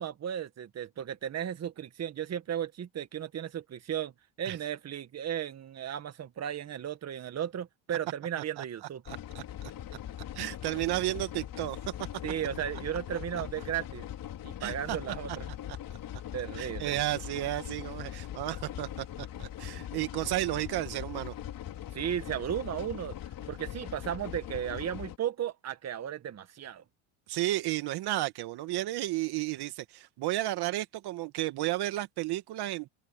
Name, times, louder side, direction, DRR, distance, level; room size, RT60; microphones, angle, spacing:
voice 1, 0.0-4.1 4.4-9.0 12.2-14.1 14.4-15.5 16.3-17.0 21.9-23.2 23.5-26.8, right 10 dB, 35° right, 1.8 m, -35 dB
voice 2, 8.6-9.7 10.3-11.8 14.6-15.0 15.3-15.4 15.7-15.8 16.6-21.3 27.3-32.9, right 16 dB, 55° right, 1.5 m, -33 dB
sound 1, 9.1-25.2, left 11 dB, 45° left, 4.3 m, -41 dB
open air
supercardioid pair, 110°, 48 cm